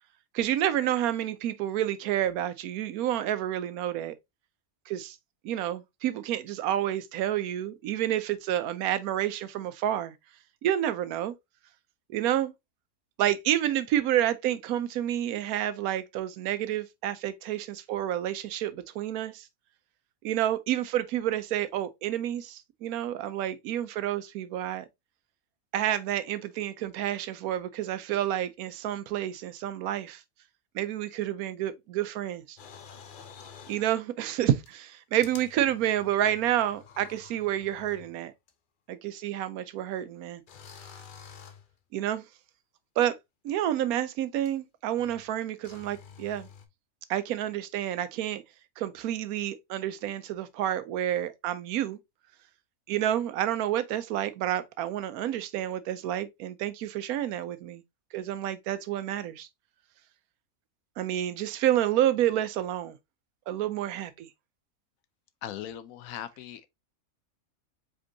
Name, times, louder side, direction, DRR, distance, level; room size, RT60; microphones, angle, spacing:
voice 1, 0.3-4.2 4.9-5.2 5.4-10.1 10.6-11.3 12.1-12.5 13.2-19.5 20.2-24.9 25.7-30.2 30.7-32.6 33.7-38.3 38.9-40.4 41.9-42.2 43.0-43.2 43.4-46.5 47.1-48.4 48.8-52.0 52.9-57.8 58.1-59.5 61.0-62.9 63.5-64.3, right 12 dB, 90° right, 1.1 m, -29 dB
sound 1, 32.6-33.9 34.7-34.8 35.2-38.2 38.5-38.6 40.5-41.7 44.4-44.5 45.0-45.3 45.6-46.7, left 7 dB, 55° left, 0.6 m, -49 dB
voice 2, 65.4-66.7, left 11 dB, 75° left, 1.0 m, -39 dB
5.1 x 3.6 x 2.7 m
omnidirectional pair, 1.5 m